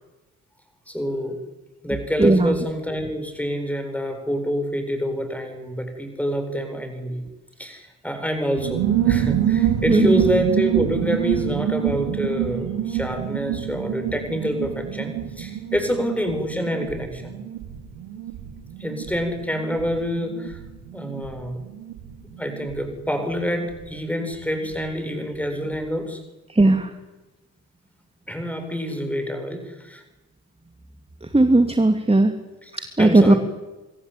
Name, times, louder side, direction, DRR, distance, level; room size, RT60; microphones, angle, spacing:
voice 1, 0.9-1.4 1.8-7.2 7.6-17.3 18.8-20.6 20.9-21.6 22.4-26.2 28.3-30.0 32.6-32.7 33.0-33.4, equal, 5° left, 6 dB, 7.9 m, -27 dB
voice 2, 2.2-2.5 9.9-10.2 26.5-26.9 31.3-32.3 33.0-33.3, right 2 dB, 15° right, 7 dB, 2.8 m, -16 dB
sound 1, 8.6-24.9 25.1-25.2 25.4-25.8, right 10 dB, 65° right, 3.2 m, -27 dB
25.0 x 23.5 x 9.0 m, 1.1 s
figure-of-eight pair, 40°, 45 cm